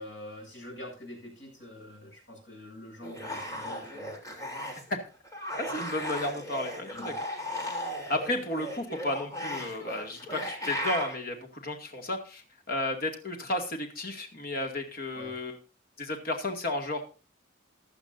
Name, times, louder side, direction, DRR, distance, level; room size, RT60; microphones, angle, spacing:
voice 1, 0.0-4.2 6.9-7.2 15.1-15.3, left 1 dB, 65° left, 0 dB, 7.9 m, -45 dB
sound 1, 3.0-4.9 5.3-11.2, equal, 20° left, 3.3 m, -36 dB
voice 2, 5.5-7.1 8.1-15.6 16.0-17.1, left 1 dB, 50° left, 4 dB, 2.3 m, -33 dB
16.0 x 11.5 x 2.6 m, 0.33 s
head